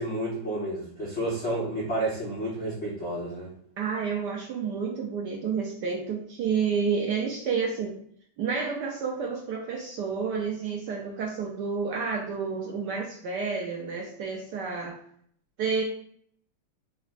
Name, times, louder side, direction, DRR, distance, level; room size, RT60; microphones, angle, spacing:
voice 1, 0.0-3.5, right 1 dB, 90° left, -4 dB, 0.6 m, -30 dB
voice 2, 3.8-8.0 8.4-15.0 15.6-15.8, right 5 dB, 75° right, 0 dB, 1.0 m, -30 dB
3.9 x 2.1 x 4.0 m, 0.64 s
omnidirectional pair, 2.4 m